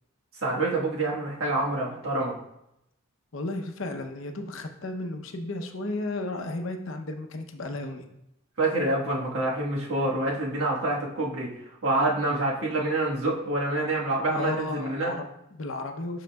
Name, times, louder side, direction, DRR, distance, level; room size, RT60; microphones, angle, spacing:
voice 1, 0.4-2.4 8.6-11.5 11.8-15.1, right 2 dB, 80° right, -3 dB, 1.4 m, -27 dB
voice 2, 3.3-8.1 14.3-16.2, left 2 dB, 70° left, 5 dB, 0.7 m, -34 dB
11.5 x 3.9 x 2.3 m, 0.83 s
head